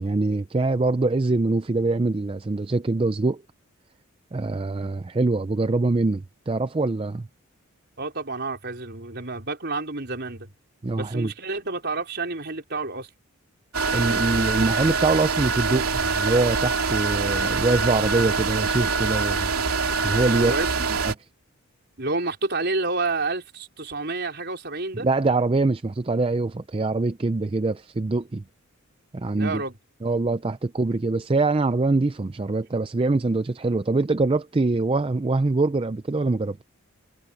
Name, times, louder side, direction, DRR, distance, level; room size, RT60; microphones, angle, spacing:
voice 1, 0.0-3.4 4.3-7.3 10.8-11.3 13.9-19.5 20.0-20.5 21.0-21.3 25.0-28.4 29.1-29.6 30.0-36.6, right 3 dB, 25° right, 0.4 m, -24 dB
voice 2, 8.0-10.5 11.0-13.1 20.4-20.7 22.0-25.1 29.4-29.7, right 3 dB, 50° right, 4.8 m, -29 dB
sound 1, 13.7-21.1, right 4 dB, 80° right, 3.0 m, -24 dB
head